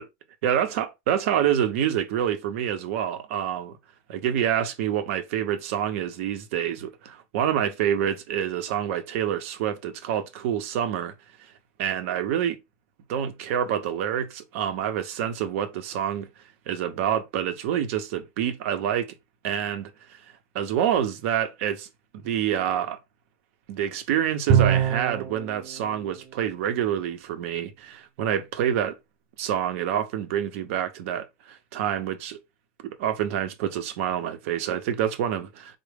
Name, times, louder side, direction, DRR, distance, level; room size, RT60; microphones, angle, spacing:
voice 1, 0.4-3.8 4.1-11.1 11.8-12.6 13.1-16.3 16.7-19.2 19.4-20.2 20.5-21.9 22.2-23.0 23.7-29.0 29.4-32.4 32.8-35.5, right 9 dB, 85° right, 0.6 m, -27 dB
Bowed string instrument, 24.5-25.4, right 9 dB, 40° right, 0.4 m, -20 dB
3.7 x 2.0 x 3.4 m
supercardioid pair, 135°, 7 cm